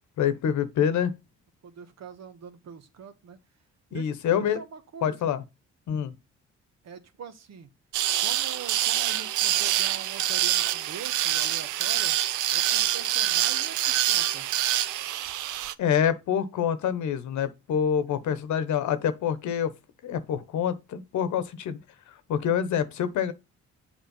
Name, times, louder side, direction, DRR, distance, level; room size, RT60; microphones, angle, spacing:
voice 1, 0.2-1.1 3.9-4.6 5.0-5.4 5.9-6.1 15.8-19.7 20.0-21.8 22.3-23.3, left 8 dB, 80° left, 1.1 m, -26 dB
voice 2, 1.6-3.4 3.9-5.3 6.8-7.7 8.2-12.2 12.5-14.5, right 6 dB, 60° right, 1.3 m, -43 dB
sound 1, 7.9-15.7, right 13 dB, 85° right, 0.6 m, -26 dB
7.3 x 5.0 x 5.4 m
cardioid pair, 80°, 29 cm